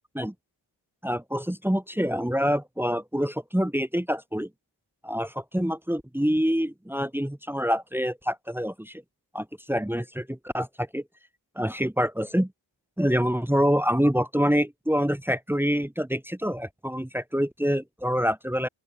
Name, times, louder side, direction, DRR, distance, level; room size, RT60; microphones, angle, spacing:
voice 1, 1.0-4.5 5.0-9.0 9.3-11.0 11.6-12.5 13.0-18.7, equal, 5° right, 1.9 m, -26 dB
open air
cardioid pair, 55°, 45 cm